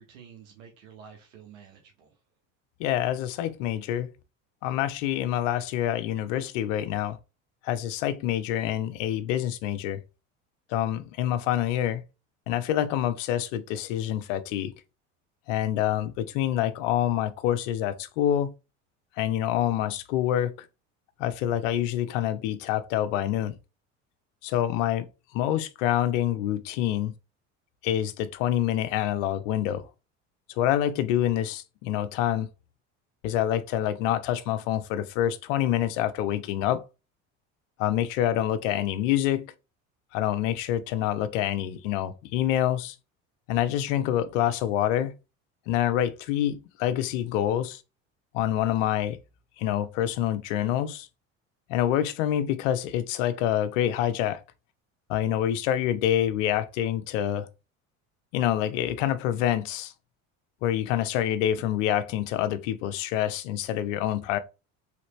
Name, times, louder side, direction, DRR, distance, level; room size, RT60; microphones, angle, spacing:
voice 1, 0.0-2.2, right 7 dB, 90° right, 1.0 m, -50 dB
voice 2, 2.8-4.1 4.6-7.2 7.6-10.0 10.7-12.0 12.5-14.7 15.5-18.5 19.2-20.5 21.2-23.5 24.4-25.1 25.3-27.1 27.8-29.9 30.6-32.5 33.2-36.8 37.8-39.5 40.1-42.9 43.5-45.1 45.7-47.8 48.3-49.2 49.6-51.1 51.7-54.4 55.1-57.5 58.3-59.9 60.6-64.4, left 11 dB, 80° left, 0.6 m, -26 dB
3.2 x 3.0 x 3.1 m
supercardioid pair, 90°, 38 cm